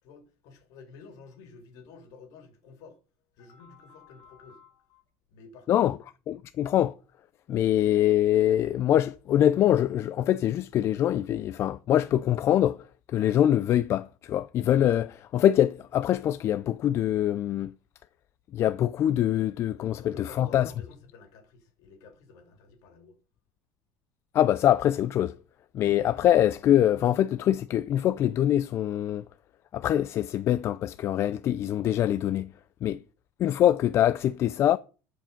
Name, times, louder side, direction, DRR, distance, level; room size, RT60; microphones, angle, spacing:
voice 1, 0.0-3.0 3.3-5.0 5.3-5.9 19.7-23.2, left 5 dB, 65° left, 2.7 m, -51 dB
voice 2, 6.3-6.9 7.5-12.8 13.1-17.7 18.5-20.7 24.3-25.3 25.7-29.3 29.7-32.5 32.8-33.0 33.4-34.8, left 11 dB, 45° left, 0.4 m, -24 dB
11.0 x 5.2 x 5.2 m
supercardioid pair, 125°, 7 cm